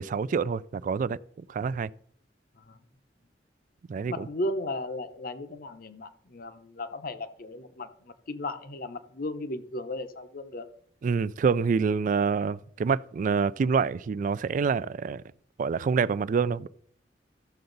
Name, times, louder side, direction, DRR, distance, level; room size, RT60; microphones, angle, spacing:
voice 1, 0.0-1.9 3.9-4.3 11.0-15.2 15.6-16.7, right 5 dB, 45° right, 0.3 m, -27 dB
voice 2, 4.1-10.7, left 1 dB, 55° left, 0.8 m, -35 dB
14.0 x 6.8 x 3.9 m
head